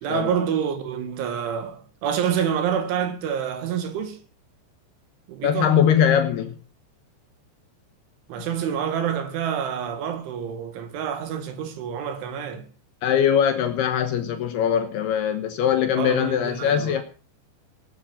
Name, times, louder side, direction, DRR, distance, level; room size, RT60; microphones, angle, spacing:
voice 1, 0.0-4.2 5.3-5.8 8.3-12.7 16.0-17.0, right 8 dB, 85° right, 4.4 m, -27 dB
voice 2, 5.4-6.6 13.0-17.0, left 9 dB, 70° left, 2.9 m, -21 dB
18.0 x 10.5 x 5.7 m
omnidirectional pair, 5.3 m